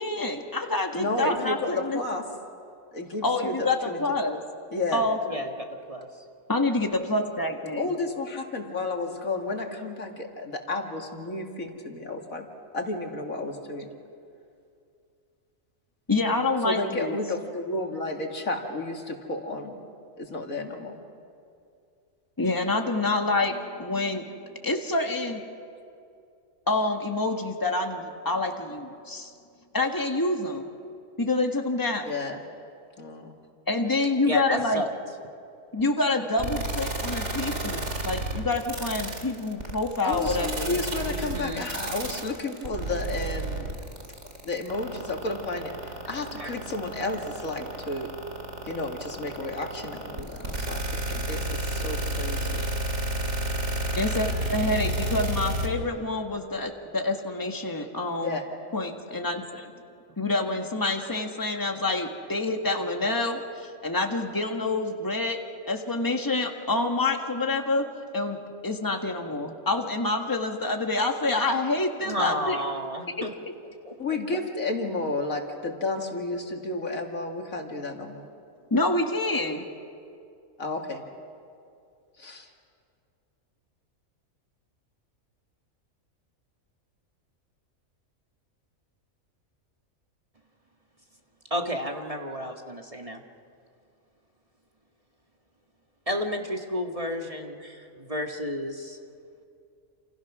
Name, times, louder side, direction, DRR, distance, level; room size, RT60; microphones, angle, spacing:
voice 1, 0.0-2.0 3.2-4.4 4.9-5.4 6.5-7.9 16.1-17.2 22.4-24.2 24.6-25.4 26.7-29.3 29.7-30.7 31.2-32.1 33.7-34.8 35.7-40.8 54.0-58.4 58.7-59.7 60.2-72.6 73.2-73.3 78.7-79.7, left 2 dB, 15° left, 3 dB, 1.7 m, -27 dB
voice 2, 0.9-2.2 2.9-4.0 4.7-5.0 7.8-12.5 12.7-13.9 16.6-19.8 20.2-21.0 32.1-32.4 33.0-33.4 40.0-43.7 44.4-48.1 48.6-52.7 58.2-58.4 74.0-78.3 80.6-81.0 82.2-82.5, left 2 dB, 80° left, 2 dB, 2.7 m, -32 dB
voice 3, 34.2-34.9 41.0-41.6 46.4-46.5 72.0-73.3 73.8-73.9 91.5-93.2 96.1-99.0, equal, 25° right, 2 dB, 1.7 m, -31 dB
sound 1, 36.4-55.7, right 1 dB, 55° right, 2.8 m, -30 dB
29.0 x 28.0 x 6.2 m, 2.4 s
omnidirectional pair, 1.4 m